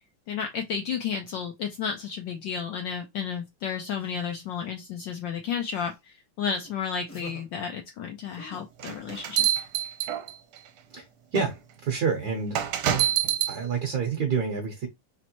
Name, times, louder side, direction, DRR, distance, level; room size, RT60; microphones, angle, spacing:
voice 1, 0.3-9.5, left 7 dB, 70° left, 1.1 m, -32 dB
sound 1, 4.0-4.7 5.6-6.0 6.6-6.7 7.1-7.4 8.3-8.6, left 2 dB, 10° left, 0.5 m, -47 dB
sound 2, 8.8-10.6 11.4-11.5 12.5-13.6, right 11 dB, 80° right, 1.5 m, -26 dB
voice 2, 10.9-12.6 13.5-14.9, right 5 dB, 60° right, 1.2 m, -28 dB
4.4 x 3.1 x 2.9 m
omnidirectional pair, 2.4 m